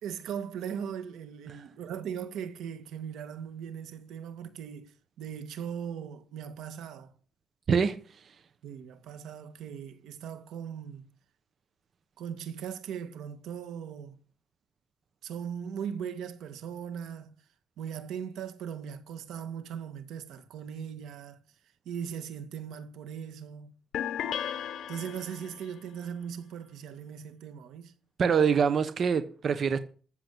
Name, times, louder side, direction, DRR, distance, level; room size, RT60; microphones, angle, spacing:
voice 1, 0.0-7.1 8.6-11.0 12.2-14.2 15.2-17.4 17.8-21.4 21.9-23.7 24.9-27.9, right 8 dB, 90° right, 1.9 m, -39 dB
sound 1, 23.9-25.7, left 9 dB, 60° left, 1.1 m, -35 dB
voice 2, 28.2-29.8, right 6 dB, 40° right, 1.0 m, -25 dB
14.5 x 7.6 x 8.4 m
cardioid pair, 150°, 0 cm